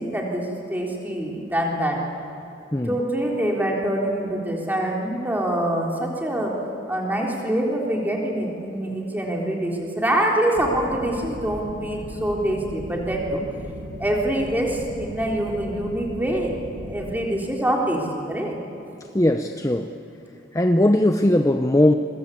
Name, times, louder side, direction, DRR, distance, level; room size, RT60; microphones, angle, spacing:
voice 1, 0.0-2.0 2.9-6.6 6.9-13.4 14.0-16.5 16.8-18.6, right 1 dB, 10° right, -1 dB, 3.6 m, -25 dB
voice 2, 2.7-3.0 19.0-20.0 20.5-21.9, left 1 dB, 15° left, 6 dB, 0.7 m, -19 dB
sound 1, 10.5-17.2, right 1 dB, 75° right, 1.3 m, -37 dB
26.5 x 23.0 x 8.6 m, 2.9 s
head